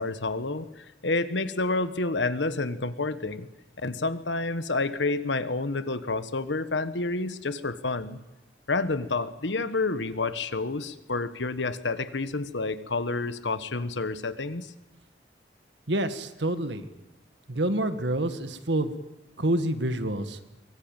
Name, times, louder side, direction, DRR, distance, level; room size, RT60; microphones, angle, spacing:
voice 1, 0.0-3.5 3.8-8.2 8.7-14.7, left 3 dB, 85° left, 12 dB, 1.3 m, -29 dB
voice 2, 15.9-16.9 17.5-19.0 19.4-20.4, right 1 dB, 80° right, 10 dB, 1.8 m, -27 dB
23.5 x 20.5 x 9.1 m, 1.0 s
head